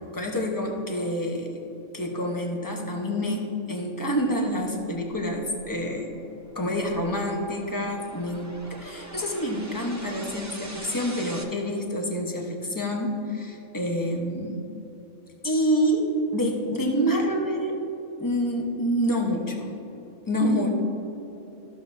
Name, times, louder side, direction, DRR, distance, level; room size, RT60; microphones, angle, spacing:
voice 1, 0.0-1.6 1.9-6.1 6.5-14.6 15.4-17.8 18.2-19.7 20.3-20.7, equal, 15° left, 1 dB, 0.8 m, -27 dB
sound 1, 4.5-11.4, right 2 dB, 20° right, 0.4 m, -44 dB
14.0 x 6.5 x 2.7 m, 3.0 s
omnidirectional pair, 1.4 m